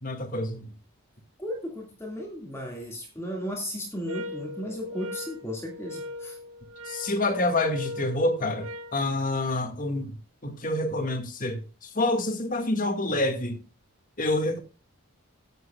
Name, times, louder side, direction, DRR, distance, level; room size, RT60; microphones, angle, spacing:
voice 1, 0.0-0.7 6.9-10.2 10.4-13.6 14.2-14.6, left 2 dB, 40° left, 1.9 m, -27 dB
voice 2, 1.4-6.4, equal, 10° left, 2.0 m, -35 dB
sound 1, 4.1-9.0, left 1 dB, 90° right, 1.1 m, -39 dB
16.0 x 8.0 x 2.3 m
head